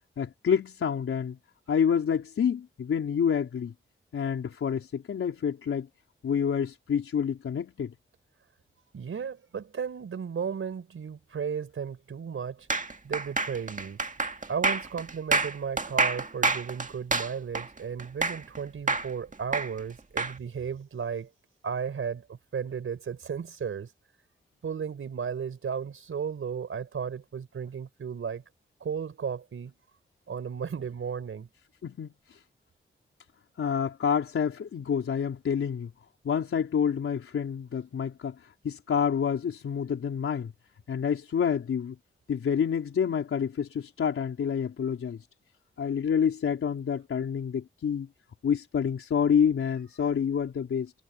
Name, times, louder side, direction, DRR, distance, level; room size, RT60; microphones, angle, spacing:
voice 1, 0.2-1.4 1.7-3.7 4.1-5.9 6.2-7.9 31.8-32.4 33.6-35.9 36.2-40.5 40.9-42.0 42.3-45.2 45.8-48.1 48.4-50.9, left 7 dB, 90° left, 4.2 m, -28 dB
voice 2, 8.9-12.7 13.0-14.0 14.5-21.3 21.6-23.9 24.6-28.4 28.8-29.7 30.3-31.5, right 7 dB, 80° right, 4.7 m, -34 dB
sound 1, 12.7-18.6 18.9-20.3, right 3 dB, 40° right, 1.9 m, -28 dB
cardioid pair, 50°, 21 cm